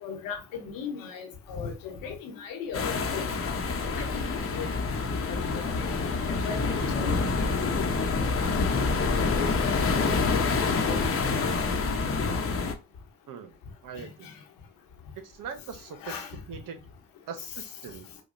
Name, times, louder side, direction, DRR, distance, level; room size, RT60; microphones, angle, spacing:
voice 1, 0.0-3.6 3.9-4.7 5.3-8.5 9.1-9.7 10.3-10.4 10.7-11.0 11.3-11.5 14.0-14.3 16.0-16.3, left 6 dB, 80° left, 1.0 m, -38 dB
sound 1, 2.7-12.7, left 4 dB, 40° left, 0.9 m, -27 dB
voice 2, 13.8-14.3 15.2-16.2 16.5-16.8 17.3-18.1, right 6 dB, 70° right, 0.8 m, -41 dB
5.0 x 2.3 x 2.6 m
supercardioid pair, 55°, 34 cm